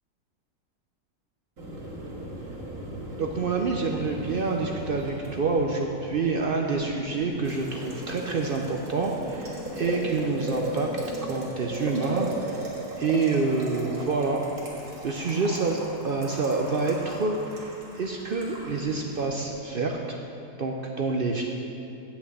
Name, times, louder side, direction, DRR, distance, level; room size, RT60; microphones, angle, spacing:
Boiling, 1.6-19.5, right 1 dB, 55° right, 2.0 m, -37 dB
voice 1, 3.2-10.9 11.2-12.6 13.0-14.4 15.0-20.2 20.6-21.4, right 3 dB, 75° right, 1 dB, 0.5 m, -27 dB
8.3 x 5.9 x 7.8 m, 2.7 s
omnidirectional pair, 1.8 m